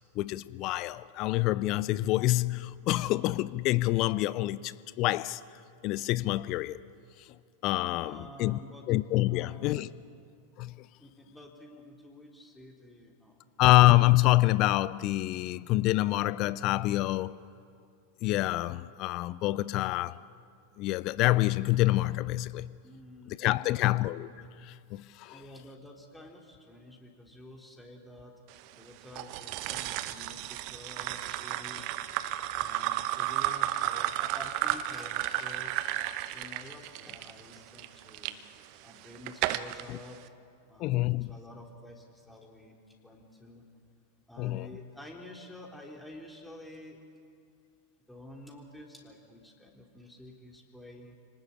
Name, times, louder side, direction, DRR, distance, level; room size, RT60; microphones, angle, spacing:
voice 1, 0.2-5.4 5.8-6.8 7.6-8.6 8.9-9.9 10.6-10.8 13.6-17.3 18.2-20.2 20.8-22.7 23.3-24.3 24.6-25.4 39.9-40.0 40.8-41.3 44.4-44.7, left 17 dB, 40° left, 0.6 m, -26 dB
voice 2, 8.0-8.8 9.3-10.1 11.0-13.5 22.8-23.9 25.3-28.3 28.7-31.9 32.6-38.4 38.8-40.2 40.7-42.8 43.0-43.6 44.3-47.0 48.1-51.1, left 1 dB, 5° left, 3.6 m, -50 dB
sound 1, 29.2-38.3 38.9-39.8, right 14 dB, 45° right, 0.9 m, -33 dB
28.0 x 19.0 x 8.7 m
figure-of-eight pair, 90°, 0 cm